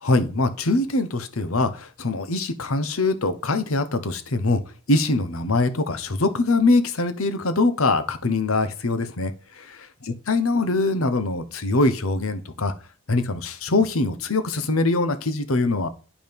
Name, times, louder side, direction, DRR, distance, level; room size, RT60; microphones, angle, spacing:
voice 1, 0.0-4.6 4.9-9.3 10.3-12.7 13.1-15.9, left 2 dB, 75° left, 1.0 m, -23 dB
11.0 x 5.0 x 5.3 m
head